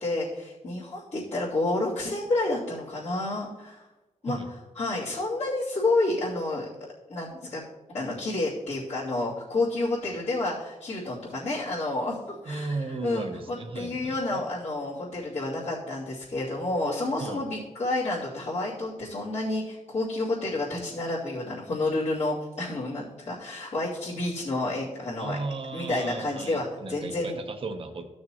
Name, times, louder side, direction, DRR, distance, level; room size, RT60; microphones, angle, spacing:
voice 1, 0.0-3.9 4.2-6.7 7.1-7.6 7.9-25.4 25.7-27.4, left 2 dB, 55° left, -12 dB, 2.8 m, -30 dB
voice 2, 12.5-14.2 17.2-17.4 25.2-28.1, right 3 dB, 45° right, 5 dB, 0.9 m, -35 dB
14.0 x 6.4 x 3.0 m, 1.1 s
wide cardioid pair, 115°, 13 cm